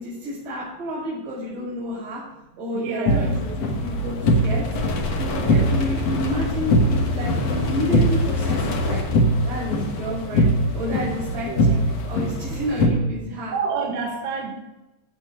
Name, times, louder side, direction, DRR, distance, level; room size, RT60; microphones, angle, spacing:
voice 1, 0.0-2.2 2.6-4.6 5.2-9.0 9.5-11.8 12.1-13.5, left 1 dB, 45° right, -10 dB, 6.4 m, -30 dB
voice 2, 2.7-3.4 11.5-11.8 13.5-14.5, right 5 dB, 75° right, 1 dB, 3.5 m, -28 dB
sound 1, 3.0-12.9, equal, 90° left, 1.4 m, -22 dB
sound 2, 4.1-9.0, left 2 dB, 55° left, 1.5 m, -29 dB
14.5 x 6.6 x 5.3 m, 0.99 s
omnidirectional pair, 5.0 m